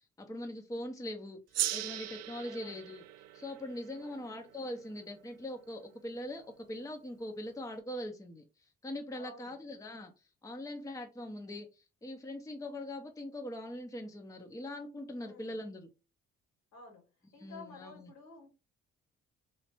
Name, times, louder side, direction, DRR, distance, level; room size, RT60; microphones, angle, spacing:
voice 1, 0.2-1.4 1.7-3.0 3.3-15.9 17.4-18.1, left 1 dB, 10° left, 0.7 m, -42 dB
Gong, 1.5-6.3, right 13 dB, 60° right, 0.4 m, -40 dB
voice 2, 2.4-2.8 3.9-4.3 9.1-9.6 15.2-15.6 16.7-17.0 17.3-18.5, left 3 dB, 65° left, 1.8 m, -52 dB
3.1 x 3.1 x 2.9 m
hypercardioid pair, 55°, 29 cm